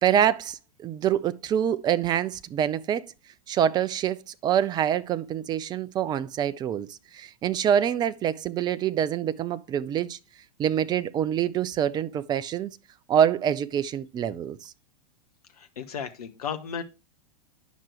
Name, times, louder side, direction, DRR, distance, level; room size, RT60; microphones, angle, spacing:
voice 1, 0.0-3.1 3.5-10.2 10.6-12.7 13.1-14.7, right 9 dB, 20° right, 0.4 m, -26 dB
voice 2, 15.6-16.8, left 7 dB, 70° left, 0.8 m, -34 dB
9.2 x 5.8 x 3.2 m
figure-of-eight pair, 95°, 20 cm